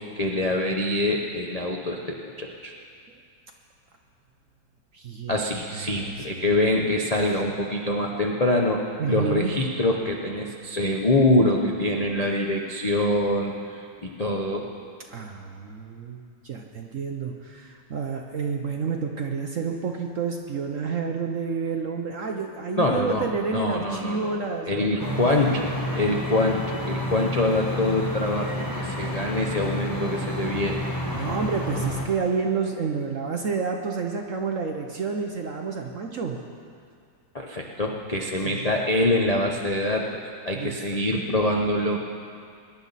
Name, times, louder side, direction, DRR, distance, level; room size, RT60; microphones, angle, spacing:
voice 1, 0.0-2.7 5.3-8.8 9.1-14.7 22.8-24.4 24.7-25.7 25.9-30.8 37.3-42.0, left 1 dB, 50° left, -1 dB, 0.4 m, -25 dB
voice 2, 4.9-5.4 5.7-6.3 9.0-9.6 15.1-25.2 31.1-36.4 38.4-38.7 40.5-40.8, right 5 dB, 55° right, 2 dB, 0.9 m, -29 dB
sound 1, 25.0-32.1, left 1 dB, 15° left, 1.1 m, -30 dB
21.5 x 10.5 x 4.1 m, 2.3 s
omnidirectional pair, 2.1 m